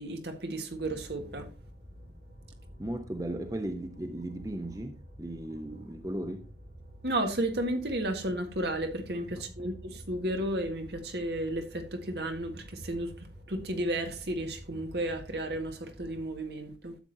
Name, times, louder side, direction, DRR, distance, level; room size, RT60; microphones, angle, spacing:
voice 1, 0.0-1.5 7.0-17.0, right 1 dB, 70° right, 1.7 m, -33 dB
sound 1, 0.7-16.3, equal, 55° right, 1.8 m, -50 dB
voice 2, 2.8-6.5 9.4-9.7, right 1 dB, 20° right, 0.7 m, -37 dB
12.5 x 7.8 x 2.7 m
head